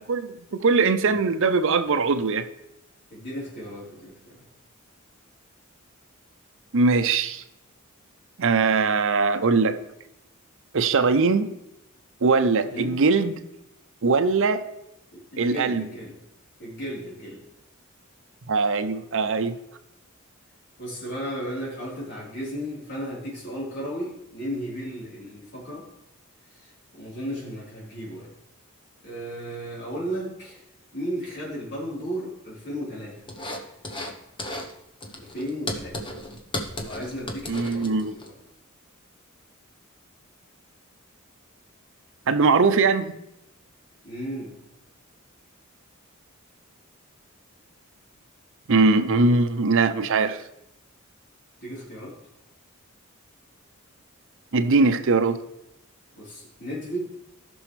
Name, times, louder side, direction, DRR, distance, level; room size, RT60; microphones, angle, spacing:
voice 1, 0.1-2.5 6.7-7.4 8.4-9.8 10.7-11.5 12.2-13.4 14.0-14.6 15.4-15.9 18.5-19.6 37.5-38.1 42.3-43.1 48.7-50.4 54.5-55.4, right 4 dB, 65° right, 10 dB, 0.6 m, -21 dB
voice 2, 3.1-4.5 12.7-13.0 15.1-16.1 16.6-17.4 20.8-25.9 26.5-28.3 29.0-30.6 30.9-33.2 35.1-36.0 36.7-38.3 44.0-44.5 51.6-52.1 56.1-57.1, equal, 55° left, -6 dB, 4.1 m, -34 dB
sound 1, 33.3-34.1 34.4-34.7 35.0-38.3, left 1 dB, 25° left, 1.1 m, -34 dB
17.5 x 6.2 x 3.3 m, 0.85 s
head